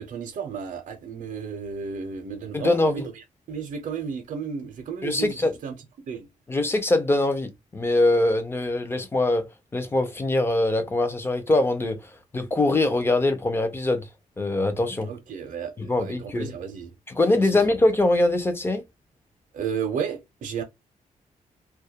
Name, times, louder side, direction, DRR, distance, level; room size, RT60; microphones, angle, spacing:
voice 1, 0.0-5.7 6.1-6.3 15.0-15.7 16.0-16.9 17.3-17.6 19.5-20.6, right 6 dB, 65° right, 0.5 m, -33 dB
voice 2, 2.5-3.1 5.0-5.5 6.5-9.4 9.7-12.0 12.3-14.1 14.4-15.1 15.8-16.5 17.1-18.8, left 2 dB, 15° left, 0.4 m, -23 dB
2.2 x 2.0 x 2.7 m
wide cardioid pair, 170°, 14 cm